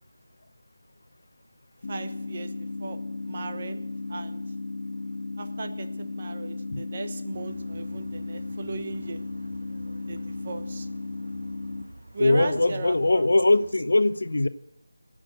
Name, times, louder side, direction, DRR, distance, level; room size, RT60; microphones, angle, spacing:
sound 1, 1.8-11.8, left 3 dB, 40° left, 1.0 m, -35 dB
voice 1, 1.9-2.5 2.8-3.0 3.3-3.8 4.1-4.4 5.4-9.2 10.1-10.9 12.1-13.3, right 3 dB, 30° right, 8 dB, 0.9 m, -37 dB
sound 2, 7.3-13.7, right 2 dB, 65° right, 1.2 m, -48 dB
voice 2, 12.2-14.5, left 2 dB, 70° left, 13 dB, 0.8 m, -21 dB
17.5 x 6.2 x 7.9 m, 0.77 s
figure-of-eight pair, 175°, 0 cm